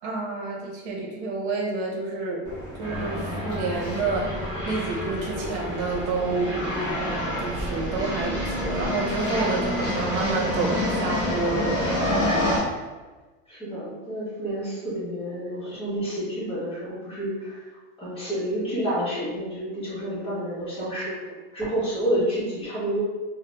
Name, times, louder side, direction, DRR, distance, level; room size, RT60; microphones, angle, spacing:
voice 1, 0.0-2.4 2.8-4.3 4.6-6.5 7.4-12.1, right 3 dB, 65° right, -2 dB, 0.8 m, -29 dB
sound 1, 2.4-12.6, left 1 dB, 10° right, 0.8 m, -28 dB
voice 2, 13.5-17.6 18.0-23.0, right 1 dB, 15° left, -9 dB, 0.9 m, -29 dB
2.4 x 2.0 x 3.1 m, 1.3 s
supercardioid pair, 155°, 34 cm